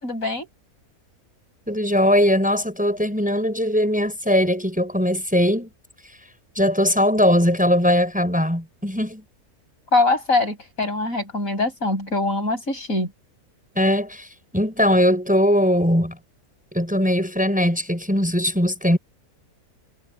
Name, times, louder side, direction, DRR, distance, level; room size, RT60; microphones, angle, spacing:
voice 1, 0.0-0.5 9.9-13.1, left 2 dB, 60° left, 7.9 m, -23 dB
voice 2, 1.7-5.7 6.6-9.2 13.8-14.3 14.5-16.2 16.7-19.0, equal, 5° right, 5.9 m, -20 dB
omnidirectional pair, 1.6 m